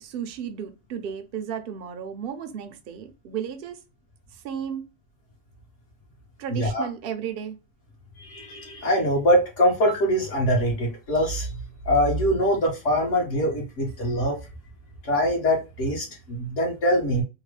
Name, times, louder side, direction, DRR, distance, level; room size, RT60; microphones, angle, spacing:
voice 1, 0.0-3.8 4.3-4.9 6.4-7.6, right 8 dB, 55° right, 0.7 m, -34 dB
voice 2, 6.5-6.9 8.2-14.4 15.0-17.2, equal, 70° left, 1.8 m, -23 dB
3.7 x 2.1 x 3.1 m
omnidirectional pair, 1.3 m